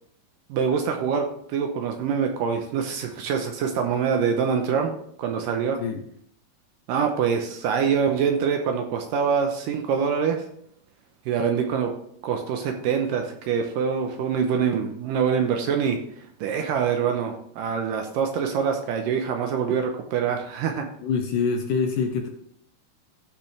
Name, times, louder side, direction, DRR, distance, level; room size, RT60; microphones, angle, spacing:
voice 1, 0.5-5.8 6.9-10.4 11.3-11.9 12.2-16.0 16.4-20.9, right 6 dB, 75° right, 4 dB, 2.2 m, -25 dB
voice 2, 21.0-22.3, left 5 dB, 75° left, 4 dB, 2.1 m, -25 dB
14.5 x 6.1 x 3.3 m, 0.68 s
omnidirectional pair, 4.4 m